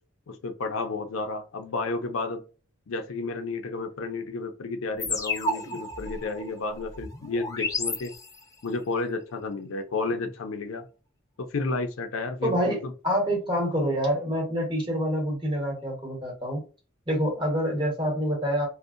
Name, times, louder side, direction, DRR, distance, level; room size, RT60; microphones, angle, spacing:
voice 1, 0.3-2.4 2.9-8.1 8.6-10.8 11.5-12.9, left 3 dB, 80° left, 6 dB, 0.5 m, -31 dB
sound 1, 5.0-8.7, left 2 dB, 15° left, 0.4 m, -32 dB
voice 2, 12.4-16.6 17.1-18.7, equal, 25° right, -1 dB, 1.1 m, -27 dB
2.7 x 2.1 x 2.5 m, 0.34 s
head